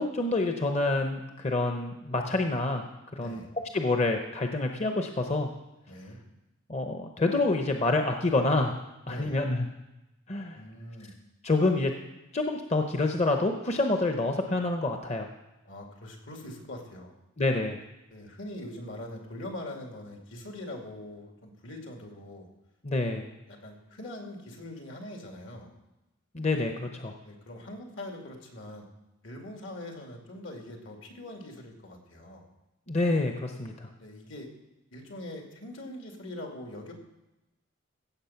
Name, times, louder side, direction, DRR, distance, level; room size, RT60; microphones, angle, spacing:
voice 1, 0.0-2.8 3.1-3.4 3.7-5.5 6.7-8.8 9.1-9.7 10.3-10.6 11.4-11.9 12.3-15.3 17.4-17.8 22.8-23.3 26.3-27.1 32.9-33.9, left 2 dB, 35° left, 4 dB, 0.8 m, -27 dB
voice 2, 2.0-2.4 3.2-3.5 5.9-6.2 9.1-9.4 10.5-11.1 15.6-17.1 18.1-22.5 23.5-25.7 27.2-28.9 29.2-32.5 34.0-34.5 34.9-36.9, left 1 dB, 75° left, 2 dB, 2.5 m, -42 dB
16.0 x 7.6 x 5.8 m, 1.0 s
head